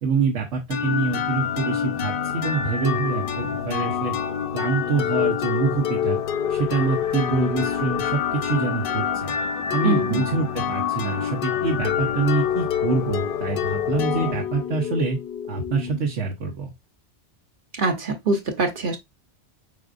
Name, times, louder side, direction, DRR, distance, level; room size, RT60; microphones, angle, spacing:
voice 1, 0.0-4.1 4.5-6.2 6.5-9.4 9.7-15.2 15.5-16.7, right 4 dB, 80° right, 1.2 m, -25 dB
sound 1, 0.7-16.3, left 8 dB, 60° left, 0.7 m, -26 dB
voice 2, 9.8-10.2 17.8-19.0, right 3 dB, 50° right, 1.1 m, -24 dB
5.0 x 4.1 x 2.5 m
omnidirectional pair, 1.2 m